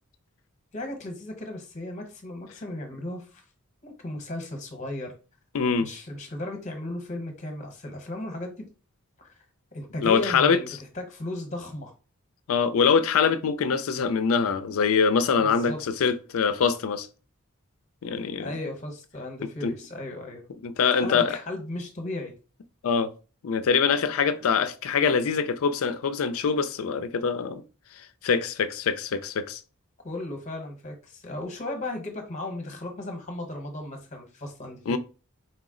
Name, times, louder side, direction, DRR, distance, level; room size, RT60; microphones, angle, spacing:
voice 1, 0.7-3.4 3.8-5.1 5.8-8.6 9.2-9.3 9.7-11.9 15.4-15.8 18.4-20.4 20.9-22.3 30.0-35.0, left 1 dB, 35° left, 0.9 m, -36 dB
voice 2, 5.5-5.9 10.0-10.6 12.5-17.1 18.0-18.5 19.6-19.7 20.6-21.4 22.8-23.1 23.4-27.6 28.2-29.6 34.9-35.0, left 6 dB, 70° left, 0.4 m, -24 dB
4.2 x 2.0 x 3.7 m
head